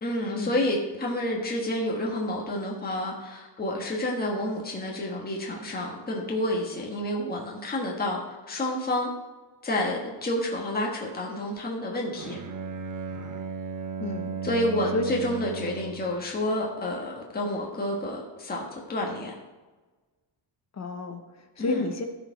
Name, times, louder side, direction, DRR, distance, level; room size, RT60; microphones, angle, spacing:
voice 1, 0.0-9.1 9.6-12.4 14.4-19.3 21.6-21.8, left 1 dB, 20° left, -2 dB, 1.4 m, -29 dB
Bowed string instrument, 12.1-16.2, right 6 dB, 45° right, 0.9 m, -35 dB
voice 2, 14.0-14.3 14.9-15.0 20.7-22.1, left 3 dB, 35° left, 6 dB, 1.1 m, -31 dB
15.0 x 5.2 x 4.5 m, 1.2 s
wide cardioid pair, 155°, 45 cm